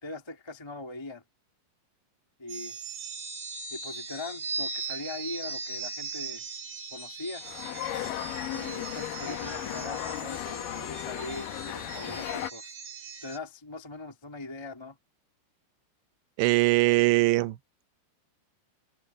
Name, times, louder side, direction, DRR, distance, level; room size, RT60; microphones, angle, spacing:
voice 1, 0.0-1.2 2.4-2.8 3.7-6.4 6.9-7.4 8.5-12.8 13.2-15.0, left 2 dB, 10° left, 1.8 m, -41 dB
sound 1, 2.5-13.4, right 4 dB, 60° right, 10.5 m, -39 dB
sound 2, 7.4-12.5, left 12 dB, 75° left, 2.0 m, -35 dB
voice 2, 16.4-17.6, right 21 dB, 80° right, 2.8 m, -22 dB
omnidirectional pair, 5.6 m